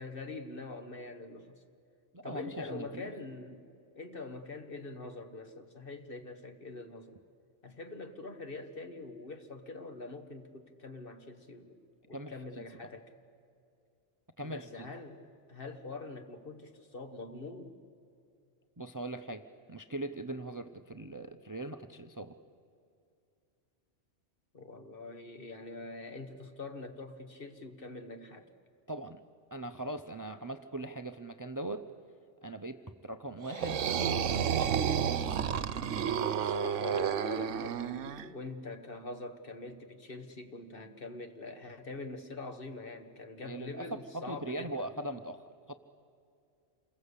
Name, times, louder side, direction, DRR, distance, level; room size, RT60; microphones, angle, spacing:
voice 1, 0.0-1.6 2.2-3.7 4.0-7.1 7.6-11.8 12.1-13.1 14.4-17.8 24.5-28.5 36.4-44.9, left 3 dB, 50° left, 7 dB, 1.7 m, -44 dB
voice 2, 2.1-3.1 12.1-12.6 14.4-14.9 18.8-19.4 19.7-22.4 28.9-29.2 29.5-31.8 32.4-33.9 34.2-35.1 43.5-45.7, right 1 dB, 20° right, 9 dB, 0.6 m, -40 dB
sound 1, 33.4-38.3, right 8 dB, 90° right, 1.1 m, -31 dB
27.5 x 21.0 x 8.3 m, 2.5 s
omnidirectional pair, 1.2 m